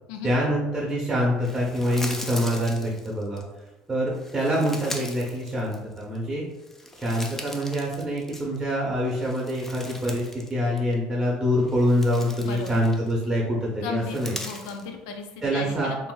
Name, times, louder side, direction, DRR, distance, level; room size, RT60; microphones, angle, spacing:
voice 1, 0.2-3.4 3.9-6.4 7.0-14.3 15.4-15.9, equal, 15° right, -4 dB, 0.7 m, -25 dB
sound 1, 1.4-3.4 4.1-6.2 6.5-8.7 9.1-10.5 10.8-10.9 11.6-13.2 13.9-14.9, left 1 dB, 10° left, 0.4 m, -39 dB
voice 2, 12.4-12.7 13.8-16.1, left 5 dB, 85° left, 4 dB, 0.5 m, -36 dB
3.7 x 2.6 x 2.3 m, 1.0 s
cardioid pair, 110°, 3 cm